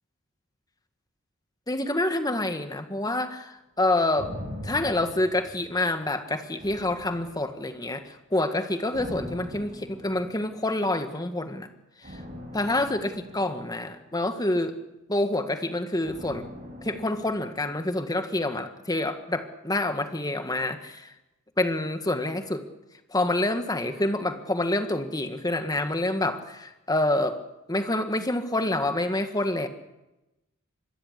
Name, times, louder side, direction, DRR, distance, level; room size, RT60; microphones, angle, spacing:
voice 1, 1.7-4.3 4.6-11.7 12.0-12.2 12.5-14.7 15.1-16.5 16.8-21.1 21.6-22.6 23.1-27.4 27.7-29.7, left 2 dB, 20° left, 7 dB, 1.8 m, -27 dB
sound 1, 4.2-6.1 6.6-7.8 8.9-10.6 12.0-14.4 16.0-18.2 18.5-18.6, left 1 dB, 40° right, 7.1 m, -42 dB
25.5 x 21.0 x 8.3 m, 0.97 s
head